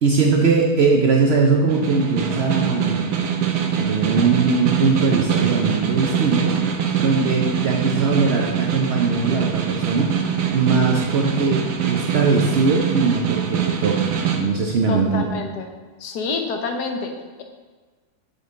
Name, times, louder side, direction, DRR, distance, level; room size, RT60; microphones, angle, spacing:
voice 1, 0.0-3.0 3.8-6.5 7.0-10.1 10.5-15.2, right 4 dB, 60° right, 0 dB, 0.7 m, -20 dB
Snare drum, 1.7-14.4, right 8 dB, 80° right, 1.2 m, -23 dB
voice 2, 14.9-15.7 16.0-17.1, left 4 dB, 90° left, 4 dB, 1.3 m, -27 dB
6.4 x 5.4 x 3.9 m, 1.4 s
omnidirectional pair, 1.7 m